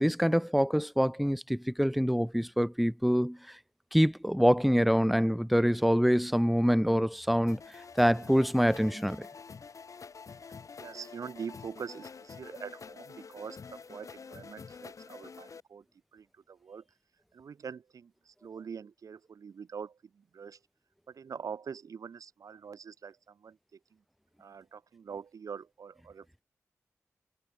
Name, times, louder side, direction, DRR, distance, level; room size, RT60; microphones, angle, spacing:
voice 1, 0.0-3.4 3.9-7.6 8.0-9.3, equal, ahead, 1.8 m, -25 dB
sound 1, 7.5-15.6, left 5 dB, 75° left, 2.8 m, -48 dB
voice 2, 10.8-15.8 16.1-16.8 17.3-20.6 21.1-24.0 24.4-26.4, right 6 dB, 85° right, 2.8 m, -44 dB
cardioid pair, 55°, 6 cm